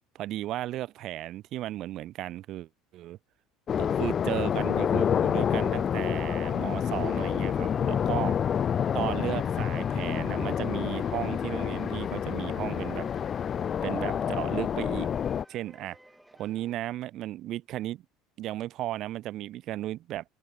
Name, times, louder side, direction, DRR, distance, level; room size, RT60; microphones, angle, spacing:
voice 1, 0.1-3.2 3.8-8.4 8.9-13.1 13.8-15.1 15.5-16.0 16.4-18.0 18.4-20.3, right 14 dB, 55° right, 0.8 m, -35 dB
sound 1, 3.7-15.4, left 8 dB, 40° left, 0.6 m, -28 dB
sound 2, 7.1-16.7, right 1 dB, 5° right, 2.7 m, -56 dB
hypercardioid pair, 80°, 0 cm